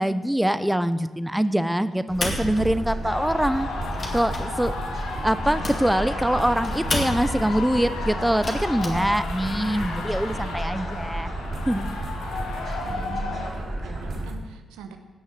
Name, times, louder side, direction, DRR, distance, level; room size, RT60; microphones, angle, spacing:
voice 1, 0.0-3.7 4.1-4.7 5.2-11.3 11.7-11.9, equal, 5° right, 13 dB, 0.8 m, -24 dB
sound 1, 2.1-3.3 3.7-7.5 8.3-8.9, left 2 dB, 50° left, 2.4 m, -32 dB
sound 2, 2.1-14.3, right 1 dB, 50° right, 4.8 m, -32 dB
sound 3, 3.0-13.5, left 3 dB, 85° left, 1.8 m, -34 dB
voice 2, 5.4-6.0 12.8-15.0, right 6 dB, 90° right, 7 dB, 1.0 m, -43 dB
17.5 x 6.5 x 6.6 m, 1.2 s
hypercardioid pair, 45°, 0 cm